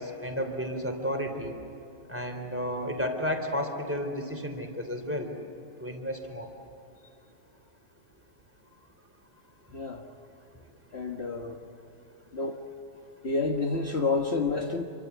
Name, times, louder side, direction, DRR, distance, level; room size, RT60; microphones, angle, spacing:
voice 1, 0.0-1.5 2.1-5.3 5.8-6.5, equal, 10° right, 5 dB, 3.4 m, -32 dB
voice 2, 9.7-10.0 10.9-11.6 12.3-12.6 13.2-14.8, left 3 dB, 45° left, 1 dB, 1.6 m, -29 dB
28.0 x 25.0 x 8.2 m, 2.9 s
omnidirectional pair, 1.6 m